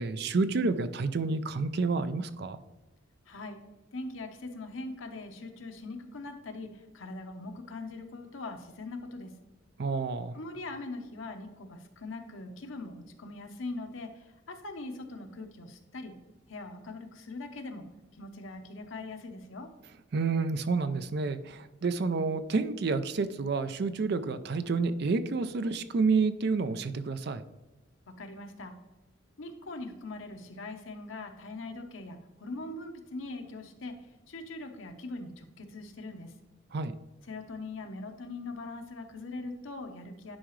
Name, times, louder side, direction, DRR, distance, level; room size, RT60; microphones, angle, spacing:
voice 1, 0.0-2.6 9.8-10.4 20.1-27.4 36.7-36.9, right 4 dB, 55° right, 12 dB, 0.4 m, -29 dB
voice 2, 3.3-3.6 3.9-9.4 10.3-16.2 16.5-19.7 28.1-28.8 29.4-34.0 34.3-36.3 37.2-40.4, left 2 dB, 90° left, 6 dB, 0.9 m, -41 dB
10.0 x 4.8 x 3.1 m, 1.0 s
head